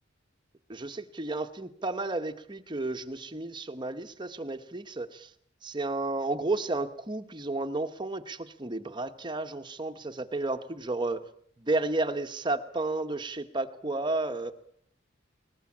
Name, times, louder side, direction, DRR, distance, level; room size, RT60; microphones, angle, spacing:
voice 1, 0.7-5.3 5.6-11.2 11.6-14.5, right 2 dB, 25° right, 8 dB, 1.0 m, -32 dB
21.0 x 20.0 x 8.6 m, 0.64 s
head